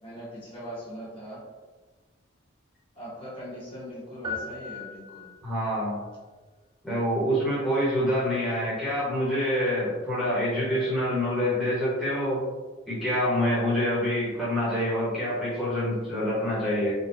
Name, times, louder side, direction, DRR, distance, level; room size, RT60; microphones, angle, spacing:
voice 1, 0.0-1.4 2.9-5.2, equal, 30° left, -9 dB, 1.2 m, -40 dB
sound 1, 4.2-5.7, left 4 dB, 25° right, 0.4 m, -37 dB
voice 2, 5.4-6.0 6.8-12.4 12.9-16.9, equal, ahead, -11 dB, 1.1 m, -26 dB
3.9 x 2.3 x 2.6 m, 1.3 s
head